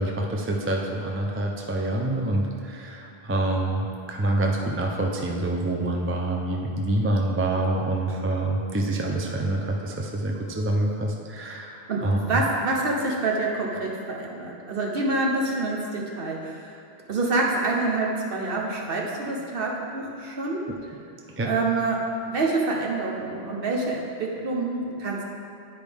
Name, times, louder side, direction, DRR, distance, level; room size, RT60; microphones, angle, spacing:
voice 1, 0.0-12.4 21.4-21.5, right 2 dB, 15° right, 0 dB, 0.4 m, -26 dB
voice 2, 11.9-16.8 17.1-20.7 21.4-25.2, right 2 dB, 60° right, -1 dB, 1.1 m, -27 dB
10.5 x 4.9 x 3.5 m, 2.6 s
omnidirectional pair, 1.1 m